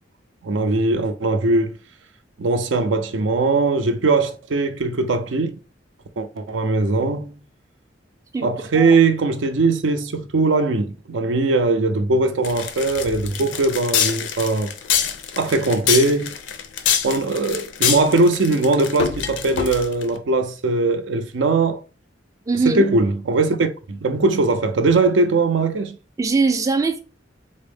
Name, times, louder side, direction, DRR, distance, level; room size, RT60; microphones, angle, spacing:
voice 1, 0.4-1.7 2.4-5.6 6.2-7.3 8.4-14.7 15.4-16.3 17.0-21.8 22.7-26.0, right 3 dB, 80° right, 0.5 m, -20 dB
sound 1, 12.4-20.1, left 8 dB, 70° left, 0.4 m, -24 dB
voice 2, 22.5-22.9 26.2-27.0, right 4 dB, 20° right, 0.3 m, -21 dB
4.0 x 2.0 x 3.4 m
head